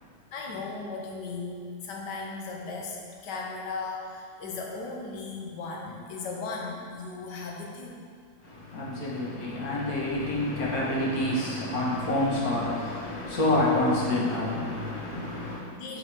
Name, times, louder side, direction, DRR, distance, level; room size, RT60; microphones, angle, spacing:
voice 1, 0.3-8.0 15.7-16.0, left 3 dB, 85° left, -1 dB, 1.6 m, -37 dB
voice 2, 8.4-15.6, left 1 dB, 60° left, -6 dB, 1.8 m, -28 dB
8.1 x 4.8 x 3.5 m, 2.1 s
omnidirectional pair, 1.8 m